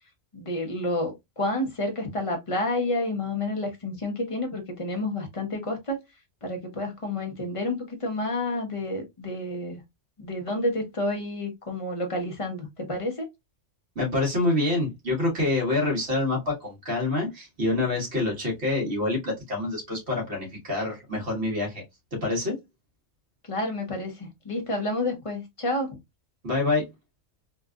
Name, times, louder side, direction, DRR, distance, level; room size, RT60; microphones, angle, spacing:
voice 1, 0.3-6.0 6.4-9.8 10.2-13.3 23.5-26.0, left 1 dB, 30° left, 0.8 m, -30 dB
voice 2, 14.0-21.8 22.1-22.5 26.4-26.9, left 2 dB, 60° right, 1.9 m, -26 dB
3.8 x 2.4 x 2.3 m
omnidirectional pair, 1.3 m